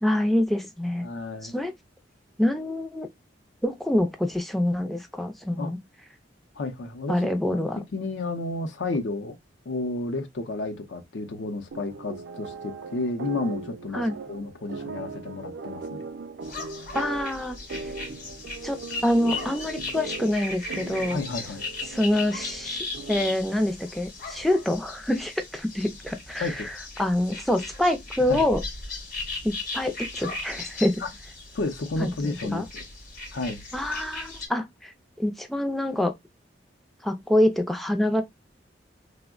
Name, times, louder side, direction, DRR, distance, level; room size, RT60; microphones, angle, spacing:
voice 1, 0.0-1.1 1.4-1.7 2.4-3.1 3.6-5.8 7.1-7.8 13.9-14.2 16.9-17.9 18.6-21.2 21.9-28.6 29.4-31.0 32.0-32.1 32.4-32.7 33.7-34.9 35.2-36.1 37.0-38.2, left 1 dB, ahead, 0.3 m, -26 dB
voice 2, 1.0-1.5 5.6-5.7 6.6-7.2 7.5-9.4 9.7-16.0 21.1-21.6 26.4-26.7 28.3-28.5 31.0-31.1 31.5-32.8 33.3-33.6, left 3 dB, 80° left, 0.6 m, -31 dB
sound 1, 11.7-23.5, right 4 dB, 70° right, 0.4 m, -39 dB
sound 2, 16.4-34.5, left 3 dB, 50° left, 0.9 m, -37 dB
3.5 x 2.1 x 2.3 m
head